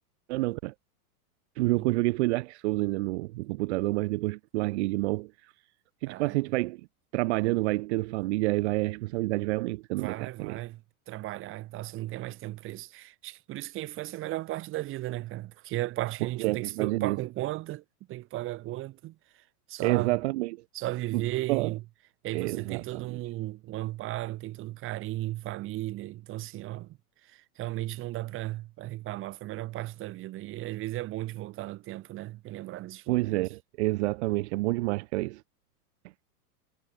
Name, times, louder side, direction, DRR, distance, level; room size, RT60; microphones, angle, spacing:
voice 1, 0.3-0.7 1.6-5.5 6.0-6.8 7.1-10.6 16.4-17.2 19.8-20.6 21.1-21.2 21.5-21.7 22.3-23.2 33.1-35.4, right 21 dB, 45° right, 5.3 m, -28 dB
voice 2, 6.0-6.4 9.9-20.2 20.7-21.8 22.2-33.5, right 16 dB, 25° right, 7.6 m, -36 dB
supercardioid pair, 165°, 45 cm